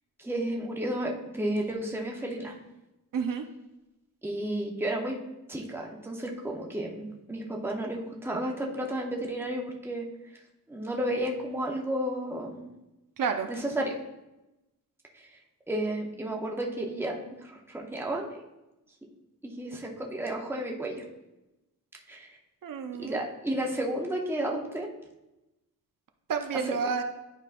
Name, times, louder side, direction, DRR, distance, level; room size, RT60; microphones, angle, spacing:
voice 1, 0.2-2.5 4.2-5.2 5.5-10.1 10.7-12.7 13.5-14.0 15.1-15.3 15.7-18.4 19.4-21.0 22.1-22.3 23.0-24.9 26.7-26.8, right 1 dB, 5° right, 0 dB, 0.7 m, -32 dB
voice 2, 3.1-3.4 13.2-13.5 22.6-23.2 26.3-27.0, right 6 dB, 65° right, 6 dB, 0.5 m, -30 dB
10.5 x 5.0 x 2.5 m, 0.99 s
wide cardioid pair, 175°, 35 cm